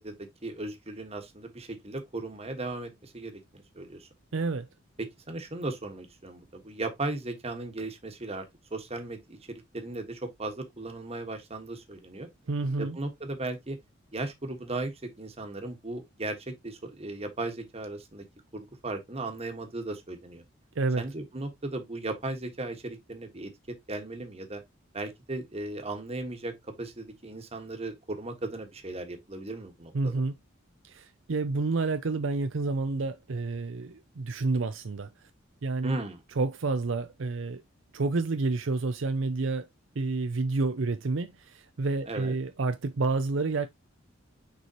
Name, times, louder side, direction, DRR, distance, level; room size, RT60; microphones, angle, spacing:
voice 1, 0.0-4.1 5.0-8.4 8.7-12.3 12.8-13.8 14.1-18.2 18.5-20.4 21.0-24.6 24.9-30.1 35.8-36.2 42.1-42.3, right 2 dB, 30° right, 1.5 m, -37 dB
voice 2, 4.3-4.7 12.5-13.0 20.8-21.0 29.9-30.3 30.8-35.1 35.6-36.0 36.4-37.6 37.9-39.7 40.0-43.7, right 3 dB, 70° right, 0.6 m, -29 dB
6.7 x 4.9 x 2.9 m
head